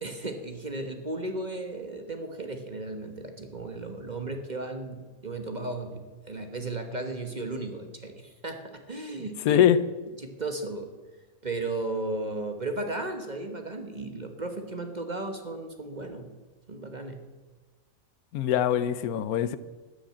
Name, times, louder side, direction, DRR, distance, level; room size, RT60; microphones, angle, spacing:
voice 1, 0.0-8.6 8.9-9.7 10.2-10.9 11.4-16.3 16.7-17.2, right 2 dB, 30° right, 6 dB, 1.2 m, -35 dB
voice 2, 9.5-9.8 18.3-19.6, left 10 dB, 85° left, 14 dB, 1.2 m, -22 dB
13.0 x 8.9 x 8.5 m, 1.4 s
omnidirectional pair, 1.5 m